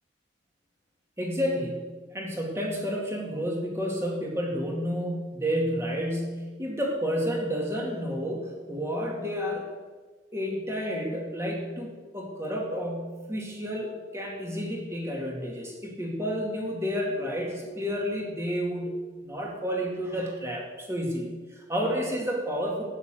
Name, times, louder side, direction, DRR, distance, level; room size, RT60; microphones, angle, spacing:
voice 1, 1.2-9.7 10.3-22.8, equal, 15° right, -1 dB, 2.4 m, -30 dB
11.5 x 9.7 x 7.7 m, 1.4 s
head